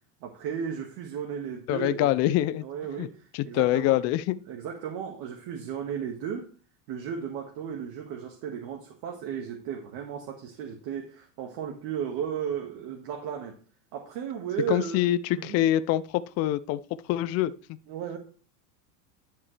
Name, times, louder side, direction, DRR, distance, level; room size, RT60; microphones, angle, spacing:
voice 1, 0.2-2.3 2.6-3.9 4.5-6.5 6.9-13.6 13.9-15.0 15.3-15.6 17.9-18.2, right 8 dB, 50° right, 1.8 m, -35 dB
voice 2, 1.7-2.6 3.0-3.1 3.3-4.4 14.7-16.8 17.1-17.8, left 14 dB, 35° left, 0.4 m, -25 dB
11.0 x 7.1 x 3.3 m
supercardioid pair, 130°, 47 cm